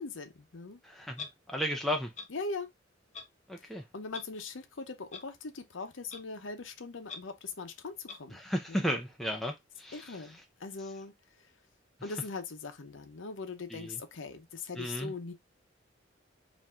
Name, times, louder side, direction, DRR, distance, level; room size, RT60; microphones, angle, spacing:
voice 1, 0.0-0.8 2.3-2.7 3.6-8.4 8.7-8.8 9.9-11.1 12.0-15.3, left 4 dB, 85° left, 0.7 m, -41 dB
voice 2, 0.8-2.1 3.5-3.8 8.3-10.2 13.7-14.0 14.8-15.1, equal, ahead, 0.6 m, -34 dB
Clock, 1.2-1.3 2.1-2.3 3.1-3.3 4.1-4.2 5.1-5.2 6.1-6.2 7.1-7.2 8.1-8.2, left 5 dB, 40° left, 0.8 m, -42 dB
4.5 x 2.7 x 3.5 m
head